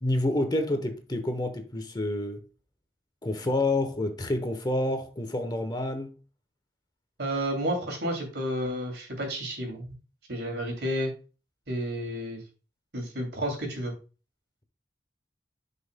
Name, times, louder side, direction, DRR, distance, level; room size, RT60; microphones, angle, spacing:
voice 1, 0.0-2.4 3.2-6.2, left 1 dB, 25° left, 0.9 m, -28 dB
voice 2, 7.2-9.8 10.3-11.1 11.7-12.4 12.9-13.9, equal, 80° right, 2.7 m, -31 dB
10.0 x 5.4 x 2.2 m
head